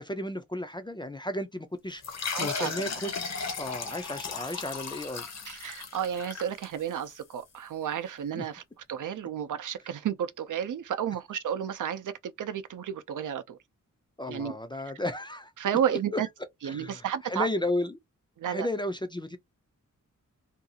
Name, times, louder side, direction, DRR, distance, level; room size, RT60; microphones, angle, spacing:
voice 1, 0.0-3.1 3.6-5.2 8.3-8.4 14.2-15.5 16.1-16.2 16.6-18.0 18.5-19.4, left 1 dB, 15° left, 0.3 m, -33 dB
sound 1, 2.0-7.2, left 5 dB, 55° left, 0.7 m, -36 dB
voice 2, 2.3-2.7 5.5-8.6 8.9-13.6 14.3-14.5 15.6-16.3 16.6-17.5 18.4-18.7, right 9 dB, 75° right, 0.5 m, -32 dB
2.6 x 2.3 x 2.6 m
wide cardioid pair, 180°, 31 cm